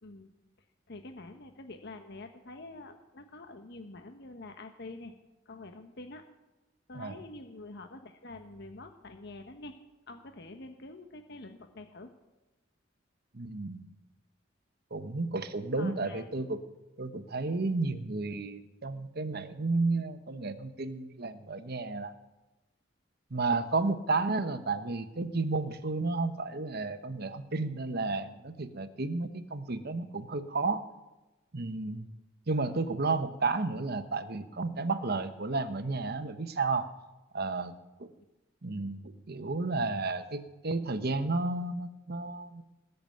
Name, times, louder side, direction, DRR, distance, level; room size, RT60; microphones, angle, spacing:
voice 1, 0.0-0.3 0.9-5.1 5.5-6.3 6.9-9.8 10.1-12.1 15.8-16.3, left 2 dB, 60° left, 6 dB, 1.1 m, -46 dB
voice 2, 13.3-13.9 14.9-16.6 17.0-22.1 23.3-30.8 31.5-32.1 32.5-36.9 37.3-37.7 38.0-38.1 38.6-39.0 39.3-42.6, right 3 dB, 55° right, 10 dB, 1.1 m, -32 dB
19.5 x 6.9 x 9.1 m, 1.1 s
head